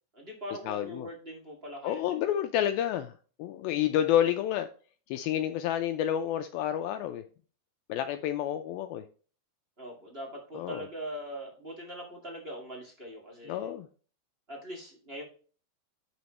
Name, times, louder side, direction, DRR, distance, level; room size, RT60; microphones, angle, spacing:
voice 1, 0.1-2.2 9.8-13.7 14.5-15.2, equal, 25° right, -2 dB, 1.5 m, -42 dB
voice 2, 0.7-1.1 1.8-3.1 3.4-4.7 5.1-7.2 7.9-9.0 10.5-10.9 13.4-13.9, left 11 dB, 80° left, 8 dB, 2.2 m, -29 dB
11.0 x 4.4 x 3.2 m, 0.38 s
omnidirectional pair, 4.6 m